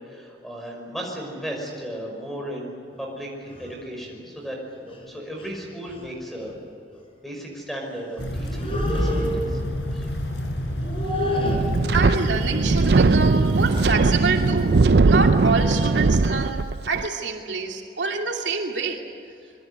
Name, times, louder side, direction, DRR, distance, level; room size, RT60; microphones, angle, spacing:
voice 1, 0.0-3.3 3.6-4.6 4.8-6.5 7.2-9.6 9.9-10.1, equal, ahead, 0 dB, 5.7 m, -35 dB
sound 1, 3.5-3.7 4.9-5.0 5.4-5.6 5.9-6.1 8.4-9.7 10.7-11.6, equal, 30° left, 5.3 m, -26 dB
sound 2, 8.2-13.9, equal, 75° left, 4.9 m, -30 dB
Wind, 11.4-17.1, right 3 dB, 65° right, 0.5 m, -19 dB
voice 2, 11.9-19.0, right 4 dB, 85° right, 1 dB, 2.7 m, -27 dB
25.5 x 22.5 x 8.1 m, 2.5 s
head